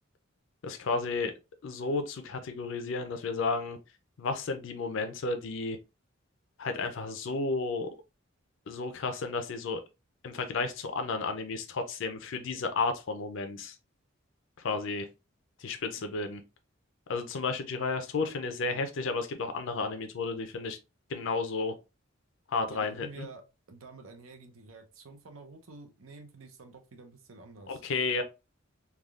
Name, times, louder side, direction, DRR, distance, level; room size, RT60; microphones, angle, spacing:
voice 1, 0.6-1.3 1.6-3.8 4.2-5.8 6.6-7.9 8.7-9.8 10.2-13.8 14.6-15.1 15.6-16.4 17.1-20.8 21.1-21.7 22.5-23.3 27.7-28.2, left 3 dB, 65° left, 0.4 m, -32 dB
voice 2, 22.7-23.4 23.7-27.8, right 4 dB, 85° right, 0.7 m, -49 dB
3.4 x 2.3 x 2.3 m
head